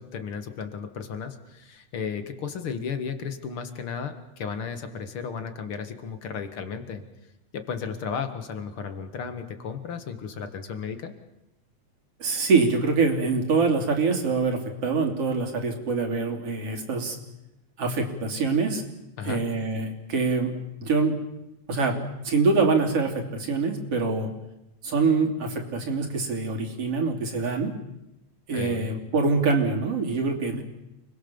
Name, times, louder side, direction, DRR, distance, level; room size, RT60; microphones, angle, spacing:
voice 1, 0.0-7.0 7.5-11.1 19.2-19.4 28.5-28.9, left 6 dB, 50° left, 8 dB, 2.3 m, -34 dB
voice 2, 12.2-17.2 17.8-18.8 19.2-20.5 20.8-21.2 21.7-24.3 24.8-27.7 28.5-30.6, right 4 dB, 50° right, 2 dB, 4.0 m, -24 dB
29.5 x 21.0 x 7.1 m, 0.94 s
omnidirectional pair, 3.5 m